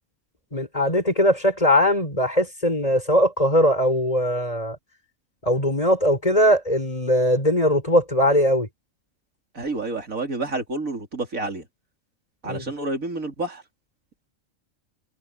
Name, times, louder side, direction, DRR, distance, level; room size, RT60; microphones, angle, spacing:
voice 1, 0.5-4.8 5.4-8.7 12.4-12.7, equal, 25° left, 6.0 m, -20 dB
voice 2, 9.5-11.6 12.4-13.6, right 2 dB, 85° right, 3.9 m, -29 dB
omnidirectional pair, 1.4 m